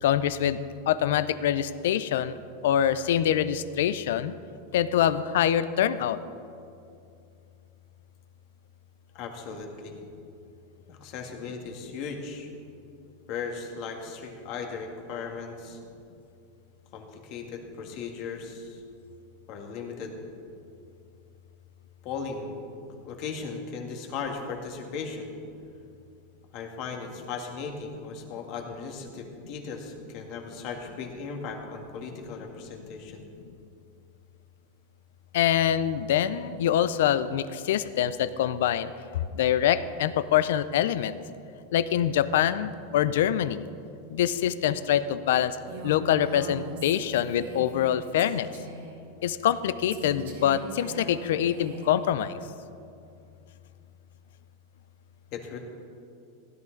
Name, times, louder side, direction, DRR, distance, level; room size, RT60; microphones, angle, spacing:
voice 1, 0.0-0.6 0.9-2.4 2.6-4.4 4.7-6.2 35.3-38.9 39.3-41.2 41.7-43.7 44.1-45.6 45.8-48.5 49.2-52.4, left 10 dB, 75° left, 14 dB, 0.5 m, -25 dB
voice 2, 9.1-10.0 10.9-12.5 13.3-15.8 16.9-18.8 19.5-20.1 22.0-22.7 23.0-25.3 26.5-33.2 55.3-55.6, left 5 dB, 50° left, 3 dB, 1.7 m, -37 dB
Female speech woman speaking, 45.7-47.9 48.2-48.9 49.9-52.0, right 3 dB, 90° right, 2.4 m, -41 dB
16.0 x 11.0 x 3.9 m, 2.5 s
supercardioid pair, 140°, 0 cm